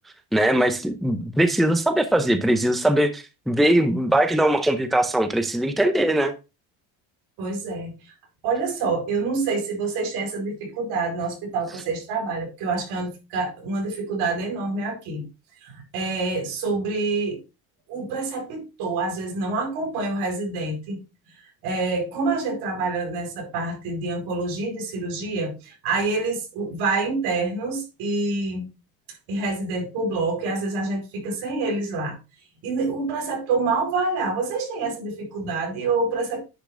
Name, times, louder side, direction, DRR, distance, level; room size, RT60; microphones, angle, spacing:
voice 1, 0.3-6.3, right 1 dB, ahead, 0.6 m, -21 dB
voice 2, 7.4-8.1 8.4-15.2 15.6-17.4 17.9-21.0 21.3-28.7 29.3-32.2 32.6-36.4, right 3 dB, 80° right, 4.7 m, -27 dB
10.0 x 6.4 x 2.6 m
cardioid pair, 140°, 39 cm